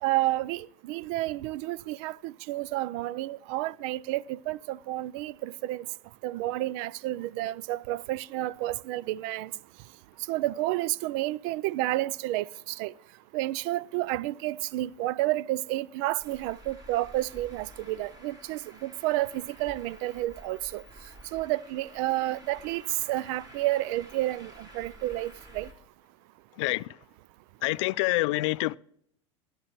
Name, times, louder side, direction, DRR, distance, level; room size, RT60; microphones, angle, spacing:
voice 1, 0.0-5.9 6.2-9.5 10.3-12.9 13.3-20.8 21.3-25.7, right 16 dB, 60° right, 0.4 m, -30 dB
Traffic noise roadway noise, 16.2-25.7, right 1 dB, 25° right, 3.0 m, -51 dB
voice 2, 26.6-26.9 27.6-28.8, left 21 dB, 65° left, 0.4 m, -26 dB
19.5 x 8.9 x 3.0 m
hypercardioid pair, 95°, 16 cm